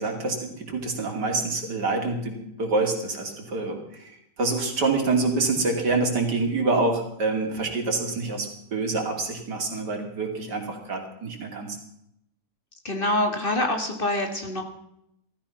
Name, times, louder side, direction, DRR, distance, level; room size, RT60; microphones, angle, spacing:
voice 1, 0.0-11.8, right 3 dB, 90° right, 2 dB, 3.4 m, -26 dB
voice 2, 12.8-14.6, left 1 dB, 30° left, 4 dB, 2.2 m, -25 dB
16.5 x 13.5 x 5.8 m, 0.78 s
omnidirectional pair, 1.8 m